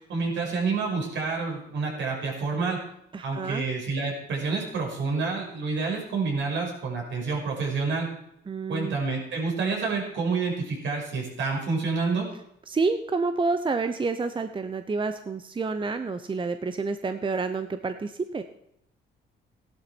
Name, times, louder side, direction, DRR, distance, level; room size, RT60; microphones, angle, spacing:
voice 1, 0.1-2.8 3.2-8.1 8.7-12.3, right 4 dB, 70° right, -1 dB, 5.8 m, -28 dB
voice 2, 3.1-3.6 8.5-9.0 12.7-18.4, right 4 dB, 25° right, 9 dB, 0.8 m, -29 dB
15.5 x 11.5 x 4.5 m, 0.78 s
cardioid pair, 90°, 20 cm